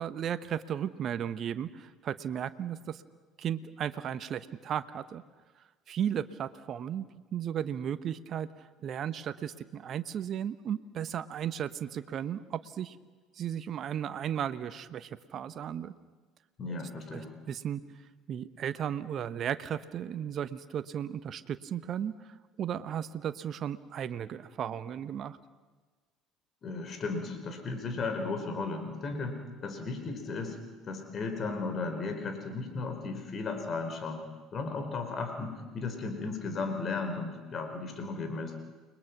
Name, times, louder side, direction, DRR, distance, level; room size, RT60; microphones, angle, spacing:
voice 1, 0.0-3.0 3.4-5.2 5.9-13.0 13.4-15.9 17.1-17.8 18.3-22.1 22.6-25.4, right 9 dB, 50° right, 13 dB, 1.1 m, -35 dB
voice 2, 16.6-17.3 26.6-30.6 30.8-34.2 34.5-38.5, left 3 dB, 40° left, 6 dB, 4.7 m, -35 dB
29.5 x 21.5 x 6.1 m, 1.3 s
hypercardioid pair, 65°, 0 cm